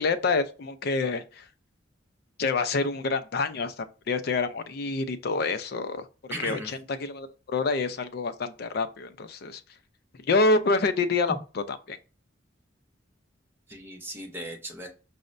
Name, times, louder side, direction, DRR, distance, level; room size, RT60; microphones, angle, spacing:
voice 1, 0.0-1.4 2.4-6.1 6.4-9.6 10.2-12.0, left 3 dB, 55° left, 0.4 m, -27 dB
voice 2, 6.3-6.7 11.3-11.4 13.7-14.9, right 1 dB, 10° right, 0.6 m, -36 dB
5.2 x 2.0 x 2.4 m
head